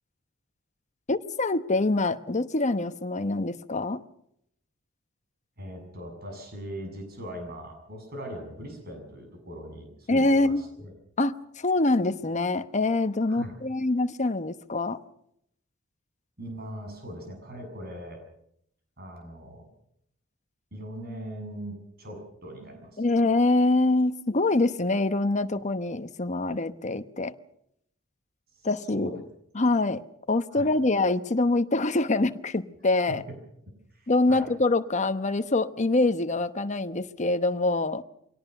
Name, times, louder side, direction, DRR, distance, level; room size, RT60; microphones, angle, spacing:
voice 1, 1.1-4.0 10.1-10.6 11.2-15.0 23.0-27.3 28.6-29.2 29.5-30.0 30.3-33.2 34.1-38.0, left 2 dB, 35° left, 1.0 m, -25 dB
voice 2, 5.6-10.9 13.3-13.5 16.4-18.2 19.0-19.7 20.7-23.0 28.5-29.2 30.5-30.7 33.1-33.4 33.9-34.5, equal, 50° right, 7.3 m, -40 dB
23.5 x 18.0 x 6.7 m
head